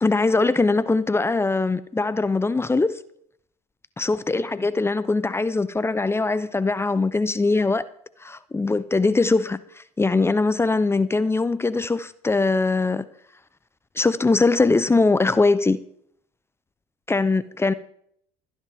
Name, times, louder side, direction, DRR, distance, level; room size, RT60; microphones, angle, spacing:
voice 1, 0.0-3.0 4.0-7.8 8.2-13.1 14.0-15.8 17.1-17.7, left 3 dB, 15° left, 0.7 m, -21 dB
28.5 x 10.5 x 3.6 m
hypercardioid pair, 75°, 16 cm